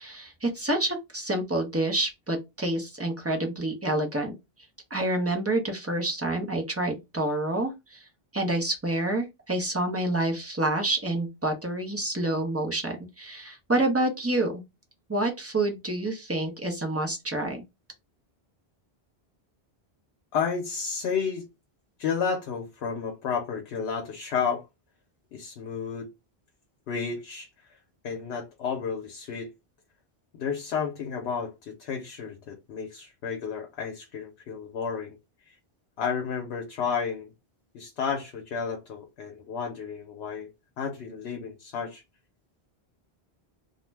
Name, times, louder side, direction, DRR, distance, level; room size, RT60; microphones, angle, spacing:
voice 1, 0.0-4.3 4.9-8.0 8.3-14.6 15.1-17.6, right 1 dB, 20° right, 0.4 m, -28 dB
voice 2, 20.3-21.5 22.0-24.7 25.3-26.1 26.9-27.5 28.0-29.5 30.4-35.2 35.5-35.6 36.0-37.3 37.7-40.5 40.8-42.0, left 6 dB, 85° left, 0.8 m, -31 dB
2.4 x 2.0 x 3.2 m
omnidirectional pair, 1.1 m